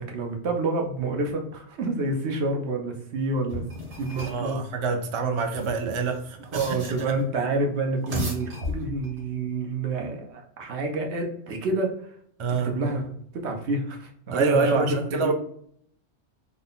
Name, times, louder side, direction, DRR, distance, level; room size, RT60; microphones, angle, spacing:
voice 1, 0.0-3.7 4.0-4.6 6.5-12.1 12.5-15.3, right 2 dB, 70° right, 2 dB, 1.0 m, -28 dB
sound 1, 3.5-4.5 5.4-7.2 7.9-9.2, left 1 dB, 85° right, 1.5 m, -35 dB
voice 2, 4.2-6.8 7.1-7.2 12.4-12.8 14.3-15.3, right 4 dB, 55° right, 4 dB, 0.3 m, -26 dB
3.6 x 2.2 x 3.8 m, 0.65 s
omnidirectional pair, 1.2 m